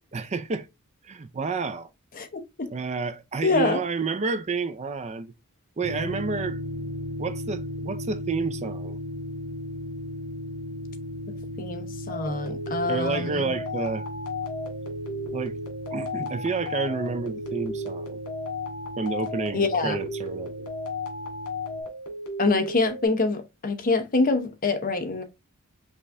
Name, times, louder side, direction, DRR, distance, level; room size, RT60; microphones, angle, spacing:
voice 1, 0.1-0.7 1.0-1.9 2.7-5.3 5.8-6.6 7.2-9.0 12.9-14.0 15.3-15.5 15.9-18.2 19.0-20.7, right 4 dB, 30° right, 0.4 m, -30 dB
voice 2, 2.2-2.7 3.4-3.8 11.6-13.5 19.5-20.0 22.4-25.2, left 3 dB, 40° left, 0.8 m, -25 dB
sound 1, 5.8-21.8, equal, 85° right, 1.9 m, -37 dB
sound 2, 12.1-23.1, left 1 dB, 80° left, 2.1 m, -35 dB
5.4 x 2.5 x 3.3 m
head